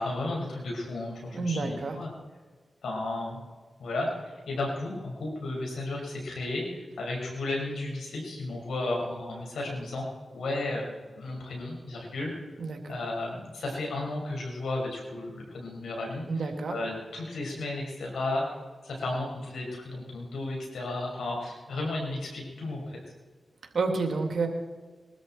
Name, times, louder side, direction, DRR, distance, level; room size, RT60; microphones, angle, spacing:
voice 1, 0.0-2.1 2.8-3.4 3.8-10.1 10.3-12.3 12.9-18.5 18.8-23.0, left 2 dB, 90° left, -1 dB, 5.8 m, -33 dB
voice 2, 1.3-2.0 12.6-13.0 16.3-16.7 23.7-24.5, right 4 dB, 75° right, 4 dB, 2.6 m, -29 dB
22.0 x 13.0 x 4.5 m, 1.4 s
cardioid pair, 45°, 0 cm